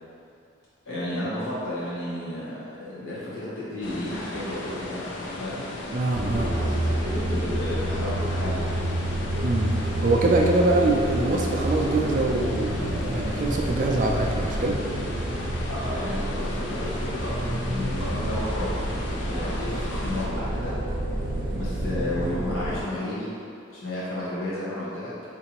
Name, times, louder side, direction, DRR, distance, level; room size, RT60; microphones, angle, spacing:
voice 1, 0.8-5.7 6.4-8.7 15.7-18.8 19.3-20.8 21.5-23.3 23.7-25.1, left 1 dB, 85° left, -9 dB, 0.9 m, -32 dB
sound 1, 3.8-20.3, left 2 dB, 65° left, 0.5 m, -36 dB
voice 2, 5.9-6.5 9.4-9.7 10.0-14.8, right 2 dB, 40° right, 0 dB, 0.3 m, -24 dB
sound 2, 6.1-22.8, right 1 dB, 85° right, 0.7 m, -29 dB
3.7 x 2.5 x 2.9 m, 2.5 s
head